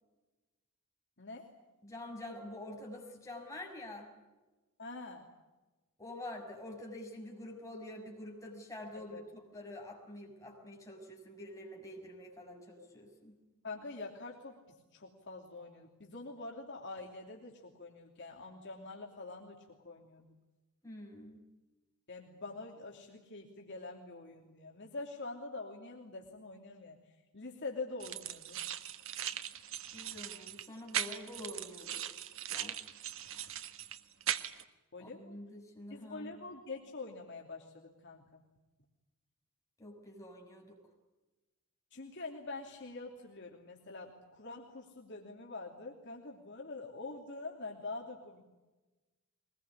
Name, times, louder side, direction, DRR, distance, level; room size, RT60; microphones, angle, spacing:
voice 1, 1.2-1.5 4.8-5.2 8.9-9.2 13.6-20.3 22.1-27.0 27.3-28.6 34.9-35.4 35.9-38.4 41.9-48.4, left 3 dB, 55° left, 0 dB, 3.0 m, -45 dB
voice 2, 1.8-4.1 6.0-13.4 20.8-21.4 29.9-32.0 32.5-32.8 35.0-36.4 39.8-40.8, left 1 dB, 15° left, 1 dB, 6.5 m, -47 dB
sound 1, 28.0-34.6, right 10 dB, 60° right, 1.4 m, -40 dB
23.5 x 21.0 x 9.8 m, 1.2 s
head